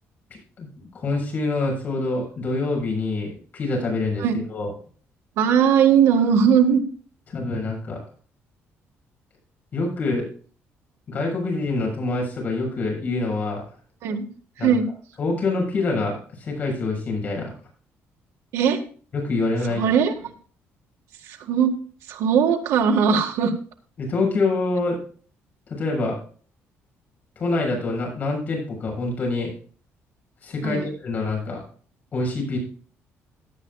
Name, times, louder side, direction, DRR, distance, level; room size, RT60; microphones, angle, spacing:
voice 1, 1.0-4.7 7.3-8.0 9.7-10.3 11.1-13.6 14.6-14.7 15.2-17.5 19.1-19.8 24.0-25.0 25.7-26.2 27.4-29.5 30.4-31.6 32.1-32.6, left 3 dB, 35° left, -1 dB, 6.9 m, -25 dB
voice 2, 5.4-6.8 14.0-14.2 14.6-14.9 18.5-18.8 19.7-20.3 21.3-21.7 22.1-23.5 30.6-30.9, right 7 dB, 85° right, 4 dB, 1.9 m, -19 dB
17.5 x 10.0 x 2.4 m, 0.42 s
cardioid pair, 170°, 5 cm